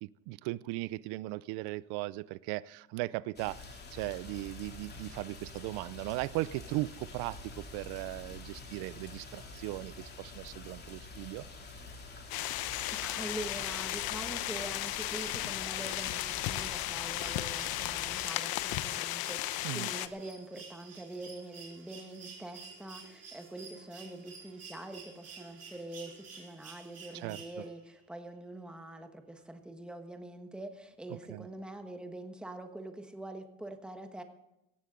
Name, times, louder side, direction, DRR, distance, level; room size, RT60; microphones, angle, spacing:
voice 1, 0.0-11.4 19.6-19.9 27.1-27.4 31.3-31.5, right 19 dB, 85° right, 20 dB, 0.7 m, -38 dB
sound 1, 3.4-18.3, left 3 dB, 25° left, 2.9 m, -48 dB
sound 2, 12.3-20.1, left 15 dB, 60° left, 1.0 m, -35 dB
voice 2, 12.5-34.2, right 1 dB, ahead, 6 dB, 1.3 m, -44 dB
sound 3, 14.0-27.9 29.4-29.5, right 5 dB, 40° right, 4.8 m, -52 dB
17.5 x 15.0 x 3.8 m, 0.90 s
cardioid pair, 155°, 40 cm